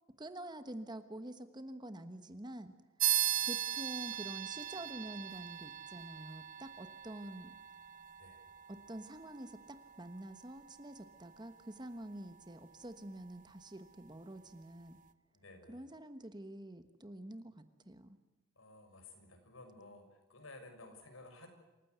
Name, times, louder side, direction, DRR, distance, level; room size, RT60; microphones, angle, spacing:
voice 1, 0.2-2.7 3.4-7.5 8.7-15.0 15.7-18.2, right 1 dB, 20° right, 10 dB, 1.2 m, -47 dB
sound 1, 3.0-13.0, right 11 dB, 40° right, 1.1 m, -39 dB
voice 2, 15.3-15.9 18.5-21.5, left 2 dB, 85° left, 4 dB, 6.6 m, -55 dB
27.5 x 15.5 x 8.1 m, 1.2 s
head